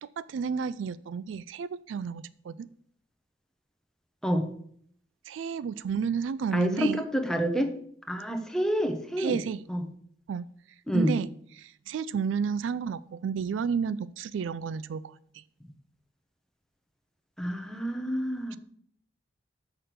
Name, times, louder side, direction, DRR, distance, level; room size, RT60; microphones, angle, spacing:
voice 1, 0.0-2.7 5.3-7.0 9.2-9.6 10.3-10.5 10.9-11.3 11.6-15.4 18.5-18.6, right 6 dB, 70° right, 0.3 m, -31 dB
voice 2, 6.5-7.7 8.1-9.4 9.7-9.8 10.9-11.1 17.4-18.6, equal, 5° left, 0.9 m, -28 dB
6.5 x 5.9 x 6.7 m
head